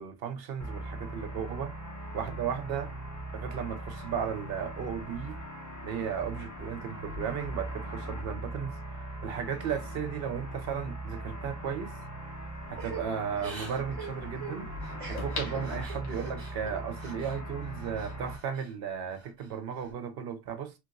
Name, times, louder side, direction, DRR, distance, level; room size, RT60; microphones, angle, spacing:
voice 1, 0.0-1.8 2.1-2.9 3.3-5.4 5.8-11.9 12.7-14.7 15.1-20.7, right 7 dB, 70° right, 0.7 m, -35 dB
sound 1, 0.6-18.4, right 1 dB, 20° left, 0.6 m, -40 dB
sound 2, 11.6-11.7 15.2-16.5 17.0-17.1, left 3 dB, 70° left, 1.1 m, -40 dB
Crying sobbing / Breathing, 12.8-17.4 17.7-18.7 19.1-19.9, right 4 dB, 40° right, 1.1 m, -45 dB
3.1 x 2.8 x 2.4 m
omnidirectional pair, 1.1 m